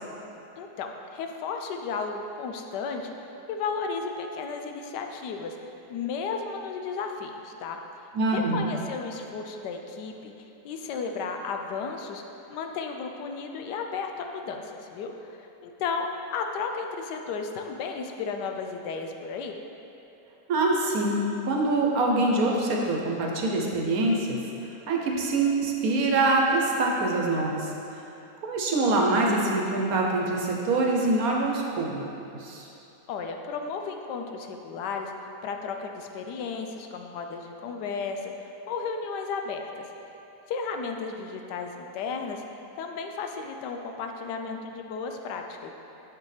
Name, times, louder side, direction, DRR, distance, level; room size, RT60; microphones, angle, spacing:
voice 1, 0.6-3.1 3.5-5.6 5.9-7.8 8.3-12.2 12.5-19.6 33.1-35.1 35.4-39.8 40.5-42.4 42.8-45.7, left 5 dB, 90° left, 4 dB, 1.2 m, -34 dB
voice 2, 8.1-8.7 20.5-21.2 21.5-28.0 28.4-32.0 32.3-32.7, right 2 dB, 65° right, -1 dB, 1.1 m, -25 dB
7.4 x 6.7 x 3.3 m, 2.9 s
omnidirectional pair, 1.8 m